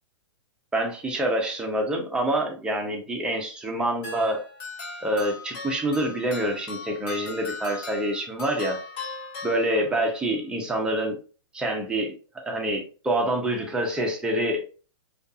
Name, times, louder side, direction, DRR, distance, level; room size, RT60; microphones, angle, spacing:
voice 1, 0.7-4.4 5.0-8.8 9.4-11.2 11.5-12.1 12.4-14.6, right 1 dB, 5° right, 0 dB, 0.5 m, -26 dB
sound 1, 4.0-10.2, left 3 dB, 40° left, 0.9 m, -38 dB
2.5 x 2.4 x 2.4 m, 0.37 s
hypercardioid pair, 135°, 16 cm